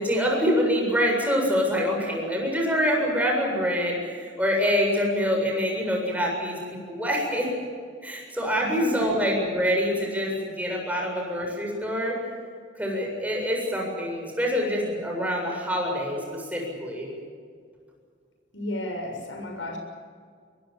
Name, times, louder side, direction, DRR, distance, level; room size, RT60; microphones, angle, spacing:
voice 1, 0.0-7.5 8.0-12.2 12.8-17.1, equal, 10° right, 0 dB, 7.7 m, -25 dB
voice 2, 8.5-9.1 18.5-19.8, left 1 dB, 90° left, 4 dB, 6.9 m, -33 dB
23.5 x 22.5 x 7.5 m, 2.1 s
head